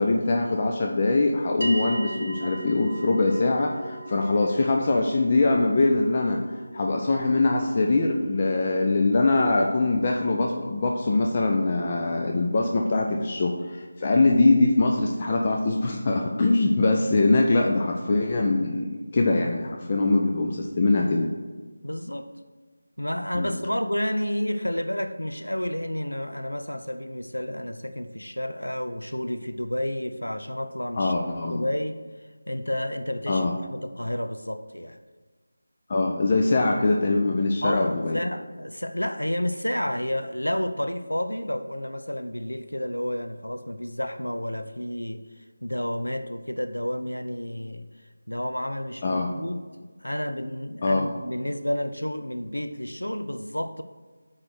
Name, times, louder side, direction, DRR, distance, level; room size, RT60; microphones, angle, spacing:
voice 1, 0.0-6.4 6.7-21.3 23.3-23.5 31.0-31.7 33.3-33.5 35.9-38.2 49.0-49.3 50.8-51.1, left 2 dB, 30° left, 1 dB, 0.5 m, -23 dB
sound 1, 1.6-12.2, right 2 dB, 75° right, 0.7 m, -40 dB
voice 2, 21.8-22.3 23.0-31.1 31.5-32.0 32.5-35.0 37.6-45.2 45.6-47.9 48.3-53.8, left 1 dB, 85° left, 9 dB, 0.7 m, -30 dB
9.5 x 3.3 x 6.3 m, 1.4 s
figure-of-eight pair, 165°, 0 cm